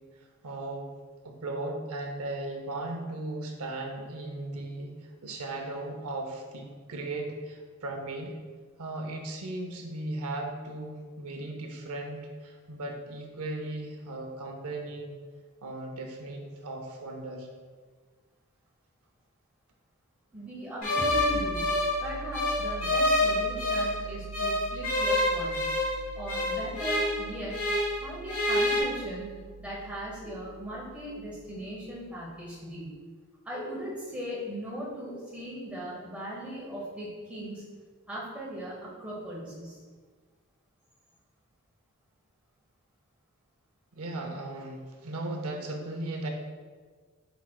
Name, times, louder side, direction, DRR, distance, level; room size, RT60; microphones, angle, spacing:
voice 1, 0.4-0.9 1.2-4.9 5.2-8.4 8.8-15.1 15.6-17.5 43.9-46.3, right 2 dB, 80° right, 3 dB, 0.6 m, -37 dB
voice 2, 20.3-21.7 22.0-25.7 26.1-27.6 28.0-29.3 29.6-33.0 33.4-37.6 38.1-39.8, right 1 dB, 5° right, -7 dB, 1.0 m, -38 dB
sound 1, 20.8-24.0 24.3-28.0 28.3-28.8, left 1 dB, 80° left, 1.2 m, -27 dB
sound 2, 21.0-32.3, right 4 dB, 45° right, 1.1 m, -43 dB
4.9 x 4.3 x 2.2 m, 1.5 s
head